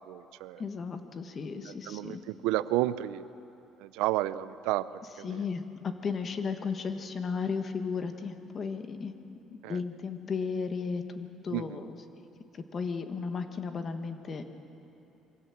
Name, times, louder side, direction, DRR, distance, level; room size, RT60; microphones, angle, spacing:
voice 1, 0.1-0.6 1.7-3.3 3.8-4.9 5.2-5.4 9.6-9.8 11.5-11.8, right 15 dB, 90° right, 16 dB, 0.5 m, -31 dB
voice 2, 0.6-2.2 5.2-9.1 9.6-12.0 12.5-14.4, left 5 dB, 40° left, 7 dB, 1.5 m, -34 dB
24.0 x 16.5 x 7.4 m, 2.9 s
cardioid pair, 100°, 0 cm